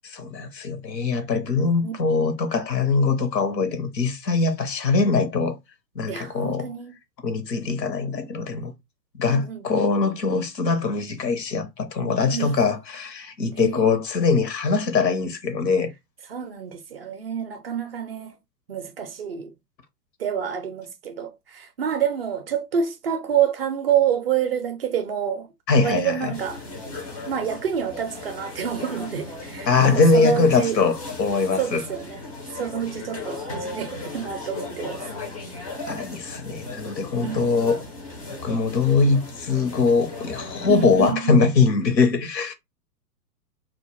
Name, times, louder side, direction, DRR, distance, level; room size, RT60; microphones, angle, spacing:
voice 1, 0.0-5.6 6.0-6.7 7.2-8.7 9.2-15.9 25.7-26.3 29.7-31.8 35.9-37.8 38.4-42.5, left 4 dB, 80° left, 0.8 m, -22 dB
voice 2, 6.1-6.9 9.2-10.1 12.3-12.5 13.5-13.8 16.3-18.3 18.7-19.5 20.2-25.5 25.8-26.6 27.3-30.8 31.6-32.2 32.5-35.0 37.2-37.8 40.7-41.4, right 8 dB, 40° right, 0.4 m, -28 dB
sound 1, 26.3-41.1, left 3 dB, 25° left, 0.3 m, -37 dB
2.2 x 2.0 x 2.9 m
figure-of-eight pair, 110°, 49 cm